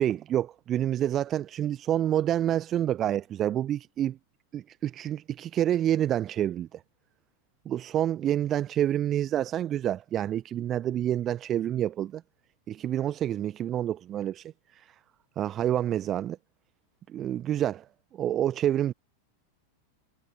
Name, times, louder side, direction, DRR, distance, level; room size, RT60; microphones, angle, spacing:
voice 1, 0.0-4.2 4.5-6.8 7.6-12.2 12.7-14.9 15.4-16.4 17.1-17.8 18.1-18.9, right 11 dB, 30° right, 1.0 m, -28 dB
figure-of-eight pair, 90°, 0 cm